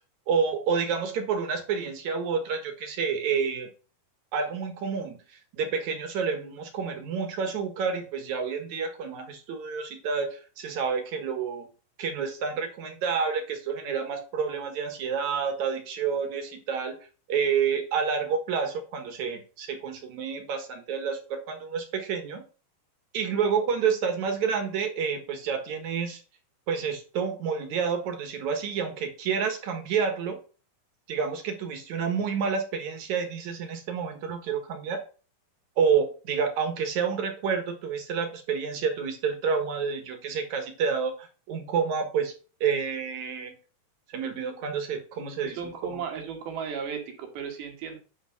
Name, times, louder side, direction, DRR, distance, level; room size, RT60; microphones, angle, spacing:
voice 1, 0.3-3.7 4.3-11.7 12.0-16.9 17.3-22.4 23.1-26.2 26.7-30.4 31.1-35.0 35.8-42.3 42.6-43.5 44.1-46.0, right 6 dB, 60° right, 6 dB, 2.6 m, -29 dB
voice 2, 45.4-48.0, right 6 dB, 85° right, 3 dB, 4.0 m, -35 dB
10.5 x 4.6 x 5.9 m, 0.36 s
omnidirectional pair, 4.2 m